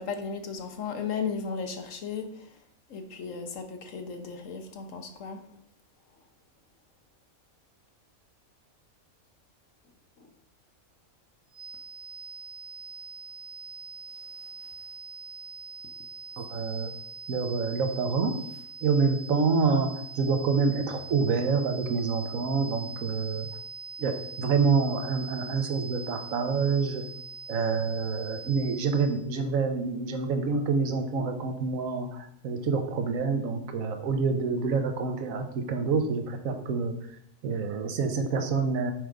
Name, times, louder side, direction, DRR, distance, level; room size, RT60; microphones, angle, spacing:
voice 1, 0.0-2.6 2.9-5.4 10.2-10.3, left 5 dB, 65° left, 6 dB, 1.2 m, -35 dB
sound 1, 11.5-29.3, right 4 dB, 55° right, 1.0 m, -43 dB
voice 2, 16.4-16.9 17.3-18.4 18.8-19.9 20.2-23.5 24.0-27.0 27.5-36.9 37.4-38.9, right 5 dB, 70° right, 6 dB, 1.3 m, -27 dB
6.2 x 4.6 x 5.1 m, 0.69 s
omnidirectional pair, 1.5 m